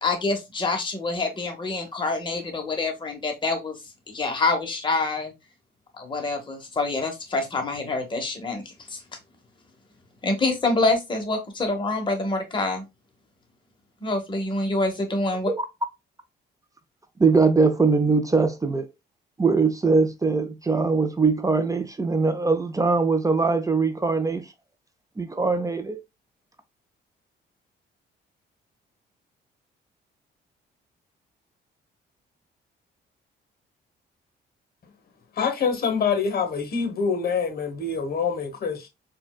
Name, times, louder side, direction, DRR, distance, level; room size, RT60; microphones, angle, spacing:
voice 1, 0.0-3.8 4.1-5.3 6.0-8.6 8.9-9.0 10.2-12.8 14.0-15.5, left 3 dB, 25° left, 0.9 m, -26 dB
voice 2, 17.2-18.9 19.4-24.4 25.2-26.0, right 4 dB, 15° right, 0.4 m, -21 dB
voice 3, 35.3-38.9, left 5 dB, 50° left, 1.0 m, -25 dB
4.2 x 2.2 x 2.2 m
cardioid pair, 90°, 20 cm